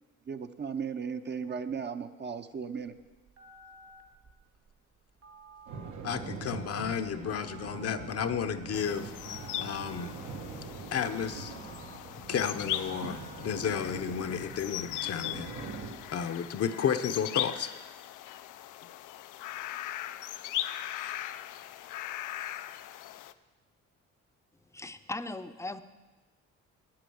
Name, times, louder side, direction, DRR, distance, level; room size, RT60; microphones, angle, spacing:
voice 1, 0.3-3.0, right 6 dB, 35° right, 9 dB, 0.7 m, -36 dB
Telephone, 2.8-14.2, right 3 dB, 55° right, 2.1 m, -55 dB
sound 1, 5.7-16.2, right 4 dB, 80° right, 1.4 m, -43 dB
voice 2, 6.0-9.1 9.6-10.2 10.9-11.5 12.3-15.5 16.1-17.7, left 7 dB, 55° left, 9 dB, 0.8 m, -32 dB
sound 2, 8.7-23.3, left 13 dB, 85° left, 0.5 m, -39 dB
voice 3, 24.7-25.8, left 2 dB, 10° left, 10 dB, 0.6 m, -38 dB
9.4 x 8.6 x 7.8 m, 1.2 s
cardioid pair, 90°, 30 cm